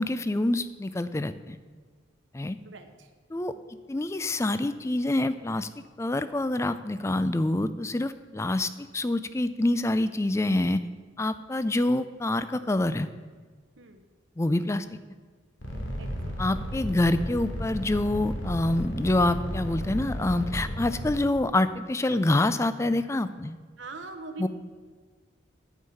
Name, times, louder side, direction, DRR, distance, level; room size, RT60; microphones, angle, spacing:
voice 1, 0.0-1.6 2.3-2.6 3.3-3.5 3.9-5.7 6.0-10.8 11.2-13.1 14.4-14.9 16.4-23.6 24.4-24.5, left 2 dB, 15° left, 13 dB, 0.3 m, -26 dB
voice 2, 2.6-3.1 13.8-14.0 16.0-16.3 23.8-24.5, right 3 dB, 75° right, 6 dB, 0.9 m, -42 dB
sound 1, 15.6-21.1, equal, 80° left, 2.0 m, -33 dB
9.6 x 5.6 x 8.3 m, 1.5 s
head